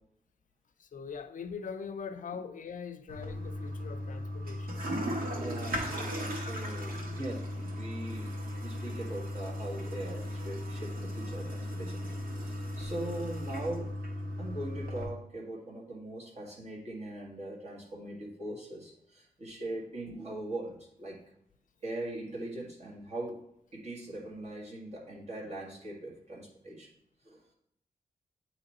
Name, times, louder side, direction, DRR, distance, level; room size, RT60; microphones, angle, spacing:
voice 1, 0.8-4.8, left 6 dB, 65° left, 9 dB, 0.5 m, -42 dB
Toilet flush, 3.1-15.1, equal, 85° right, 1.3 m, -37 dB
voice 2, 5.3-8.3 8.6-13.9 14.4-21.2 21.8-23.4 23.7-26.9 27.3-27.4, right 1 dB, 50° right, -2 dB, 1.9 m, -41 dB
8.8 x 3.1 x 4.1 m, 0.76 s
wide cardioid pair, 145°, 15 cm